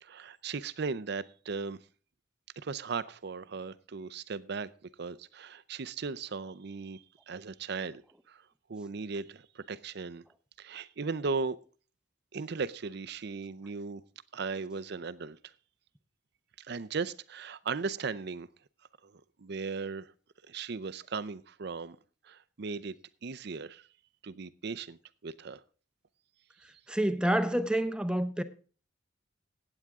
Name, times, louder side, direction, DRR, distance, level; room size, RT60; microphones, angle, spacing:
voice 1, 0.0-1.8 2.6-4.7 5.0-8.0 8.3-8.4 8.7-10.2 10.6-11.6 12.3-14.0 14.3-15.5 16.6-18.5 19.0-20.1 20.4-22.0 22.2-22.9 23.2-23.9 24.2-25.6, right 4 dB, 60° right, 0.6 m, -37 dB
voice 2, 26.9-28.4, right 1 dB, 5° right, 0.7 m, -28 dB
15.5 x 8.9 x 3.6 m
head